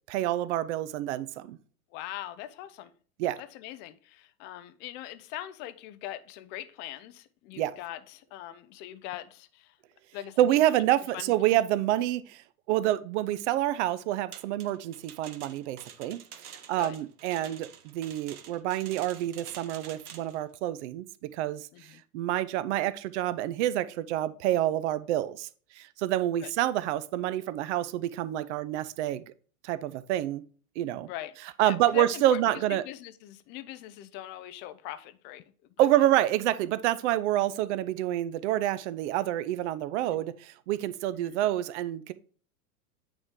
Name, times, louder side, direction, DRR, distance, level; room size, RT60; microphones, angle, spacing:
voice 1, 0.1-1.6 3.2-3.4 7.6-7.7 10.4-12.4 12.7-16.2 16.5-21.7 22.1-25.5 25.8-29.2 29.6-30.4 30.8-31.1 31.6-32.8 35.8-42.1, right 13 dB, 50° right, 15 dB, 0.6 m, -28 dB
voice 2, 1.9-2.9 3.4-9.8 10.1-10.7 11.1-11.6 16.7-17.0 17.4-17.5 21.7-22.0 26.4-26.5 31.1-35.4 35.8-35.9 40.1-40.2 41.1-41.4, left 13 dB, 25° left, 12 dB, 0.4 m, -41 dB
sound 1, 14.3-20.4, right 8 dB, 75° right, 0.9 m, -48 dB
8.8 x 3.2 x 3.7 m, 0.42 s
hypercardioid pair, 95°, 45 cm